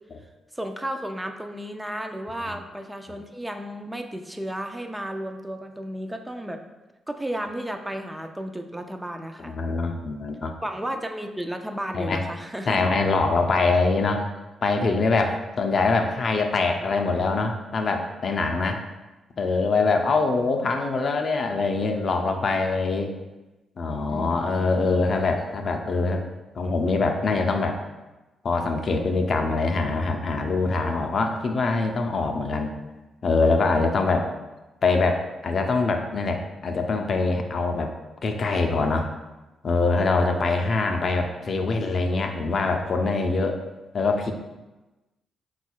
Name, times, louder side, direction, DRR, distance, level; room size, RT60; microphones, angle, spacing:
voice 1, 0.5-6.6 7.1-9.6 10.6-12.8 15.3-15.4 24.1-24.6, right 1 dB, 10° right, 5 dB, 0.4 m, -33 dB
voice 2, 9.4-10.6 11.9-12.2 12.7-14.3 14.6-18.8 19.4-23.1 23.8-26.2 26.5-27.8 28.4-32.7 33.2-34.3 34.8-37.9 38.2-39.1 39.6-43.6 43.9-44.3, left 3 dB, 55° left, 4 dB, 0.5 m, -24 dB
3.9 x 2.3 x 4.4 m, 1.1 s
supercardioid pair, 60°, 0 cm